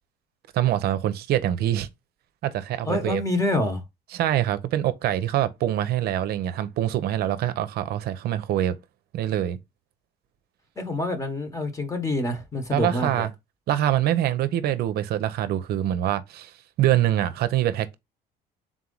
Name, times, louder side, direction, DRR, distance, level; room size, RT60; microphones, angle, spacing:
voice 1, 0.5-1.9 2.4-3.2 4.1-8.8 9.1-9.6 12.7-13.3 13.7-16.5 16.8-17.9, right 12 dB, 70° right, 0.6 m, -24 dB
voice 2, 2.9-3.8 10.8-13.3, left 1 dB, 20° left, 1.0 m, -27 dB
3.7 x 3.0 x 3.8 m
cardioid pair, 110°, 17 cm